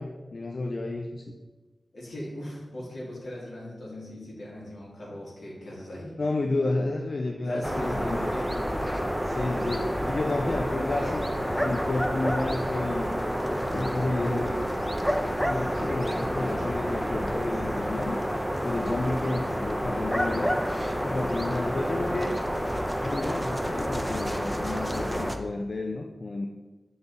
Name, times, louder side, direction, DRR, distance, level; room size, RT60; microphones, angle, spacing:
voice 1, 0.0-1.3 6.2-8.2 9.2-13.1 13.7-14.7 15.4-18.2 18.6-20.5 21.0-22.3 23.0-26.5, left 2 dB, 55° left, 3 dB, 0.4 m, -31 dB
voice 2, 1.9-6.1 7.4-8.5, left 1 dB, 80° left, -4 dB, 1.9 m, -39 dB
sound 1, 7.6-25.4, equal, ahead, 0.5 m, -29 dB
7.0 x 3.9 x 3.9 m, 1.2 s
wide cardioid pair, 70°, 0 cm